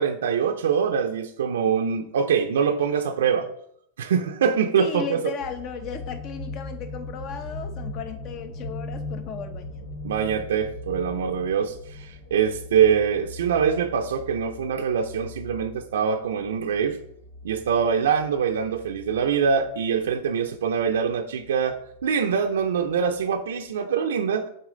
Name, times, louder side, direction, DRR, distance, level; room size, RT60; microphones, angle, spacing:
voice 1, 0.0-3.5 4.0-5.2 10.0-17.0 17.4-24.5, right 7 dB, 90° right, 4 dB, 0.5 m, -24 dB
voice 2, 4.8-9.8, left 6 dB, 40° left, 8 dB, 0.8 m, -35 dB
sound 1, 5.4-23.2 23.7-23.8, left 2 dB, 90° left, 1.6 m, -40 dB
6.2 x 4.5 x 3.8 m, 0.70 s
supercardioid pair, 135°, 0 cm